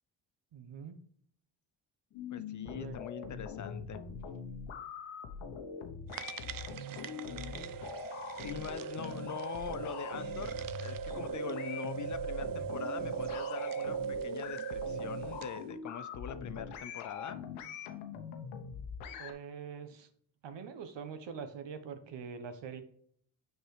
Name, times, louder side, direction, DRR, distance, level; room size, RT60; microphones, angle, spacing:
voice 1, 0.5-1.0 2.6-3.0 19.2-20.1 20.4-22.8, right 6 dB, 65° right, 9 dB, 1.1 m, -44 dB
sound 1, 2.1-19.3, left 6 dB, 85° left, 0.9 m, -43 dB
voice 2, 2.3-4.0 8.4-17.4, left 8 dB, 40° left, 12 dB, 0.5 m, -43 dB
sound 2, 6.1-15.6, right 8 dB, 45° right, 0.5 m, -39 dB
6.4 x 4.7 x 3.2 m, 0.63 s
cardioid pair, 80°, 47 cm